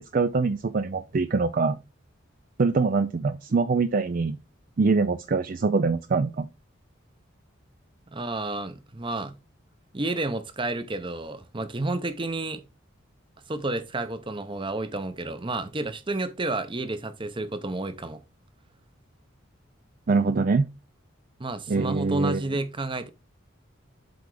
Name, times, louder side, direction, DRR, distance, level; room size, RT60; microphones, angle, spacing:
voice 1, 0.0-1.8 2.6-4.4 4.8-6.5 20.1-20.7 21.7-22.4, right 4 dB, 45° right, 0.4 m, -24 dB
voice 2, 8.1-9.4 9.9-12.6 13.5-18.2 21.4-23.1, right 2 dB, 25° right, 0.8 m, -31 dB
7.9 x 3.5 x 4.8 m
head